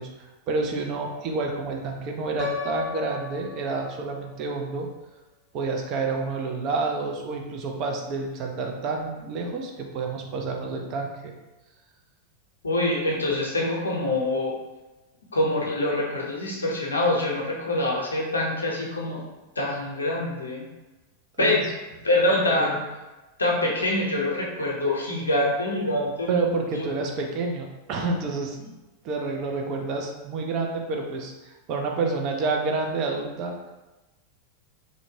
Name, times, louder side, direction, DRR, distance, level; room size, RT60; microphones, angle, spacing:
voice 1, 0.0-4.9 5.5-11.3 21.4-21.7 22.3-22.8 26.3-28.6 29.0-33.6, right 3 dB, 40° right, 2 dB, 0.4 m, -29 dB
Piano, 2.4-4.4, left 6 dB, 35° left, 0.6 m, -34 dB
voice 2, 12.6-14.5 15.3-19.2 19.6-20.7 21.4-21.7 22.0-22.8 23.4-26.4 26.8-26.9, left 1 dB, 75° left, -3 dB, 0.6 m, -25 dB
2.6 x 2.1 x 2.7 m, 1.1 s
figure-of-eight pair, 90°, 0 cm